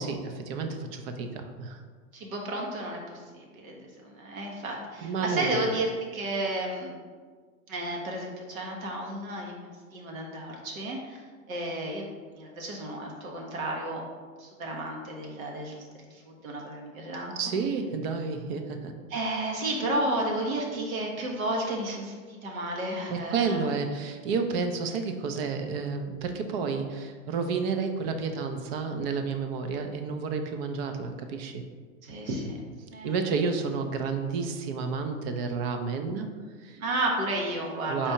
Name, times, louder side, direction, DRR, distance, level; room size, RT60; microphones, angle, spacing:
voice 1, 0.0-1.8 5.0-5.5 17.4-18.9 23.1-31.6 33.0-36.3 36.6-36.8 37.9-38.1, right 5 dB, 45° right, 6 dB, 0.6 m, -30 dB
voice 2, 2.1-6.9 7.7-12.0 12.3-14.0 14.4-15.8 16.1-17.3 19.1-23.7 32.0-32.6 32.9-33.1 36.8-38.1, right 1 dB, 80° right, 0 dB, 1.2 m, -32 dB
4.3 x 2.7 x 4.5 m, 1.5 s
hypercardioid pair, 115°, 41 cm